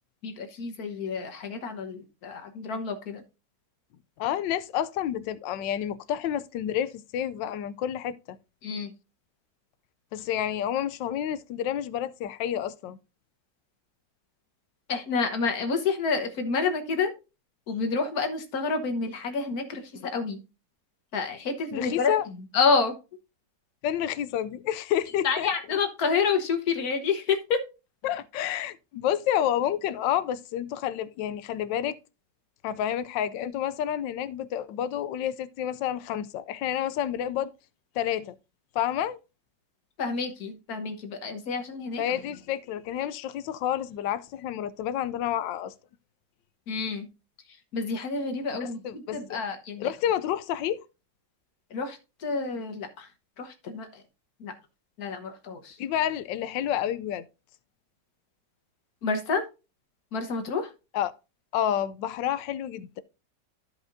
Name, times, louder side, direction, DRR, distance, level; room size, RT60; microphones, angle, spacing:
voice 1, 0.2-3.2 8.6-8.9 14.9-17.1 17.7-20.4 21.1-22.1 22.5-22.9 25.2-27.6 40.0-42.0 46.7-47.1 47.7-49.9 51.7-53.1 53.4-54.0 54.4-54.5 55.0-55.8 59.0-59.4 60.1-60.7, left 5 dB, 60° left, 1.6 m, -29 dB
voice 2, 4.2-8.4 10.1-13.0 21.7-22.3 23.8-25.5 28.0-32.0 32.6-37.5 37.9-38.4 38.7-39.2 42.0-45.7 48.6-49.4 49.8-50.8 55.8-57.2 60.9-61.1 61.5-63.0, left 10 dB, 90° left, 1.3 m, -29 dB
14.0 x 5.0 x 2.6 m
omnidirectional pair, 1.9 m